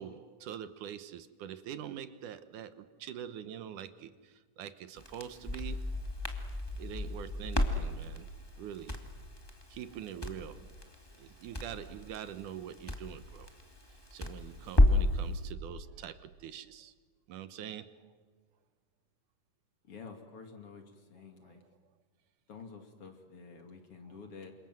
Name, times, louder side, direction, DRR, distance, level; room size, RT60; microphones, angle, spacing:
voice 1, 0.0-6.0 6.8-8.3 8.6-9.0 9.7-10.8 11.2-13.5 14.1-16.9 17.3-18.2 21.4-21.5, right 10 dB, 75° right, 12 dB, 2.4 m, -44 dB
Crackle, 5.0-15.2, left 1 dB, 10° left, 1.5 m, -32 dB
voice 2, 19.9-21.6 22.5-24.5, left 5 dB, 45° left, 5 dB, 3.1 m, -49 dB
28.0 x 27.5 x 7.8 m, 1.4 s
omnidirectional pair, 3.8 m